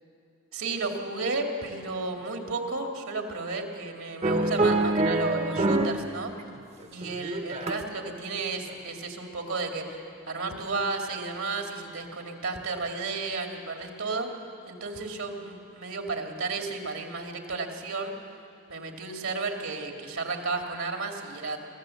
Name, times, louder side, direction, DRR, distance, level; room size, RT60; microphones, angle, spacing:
voice 1, 0.5-6.3 6.9-10.0 10.3-14.3 14.7-18.1 18.7-21.6, right 3 dB, 75° right, 3 dB, 2.3 m, -33 dB
sound 1, 4.2-6.1 6.4-8.0 8.5-8.7, right 2 dB, 30° right, 0.8 m, -26 dB
24.0 x 14.5 x 7.7 m, 2.6 s
head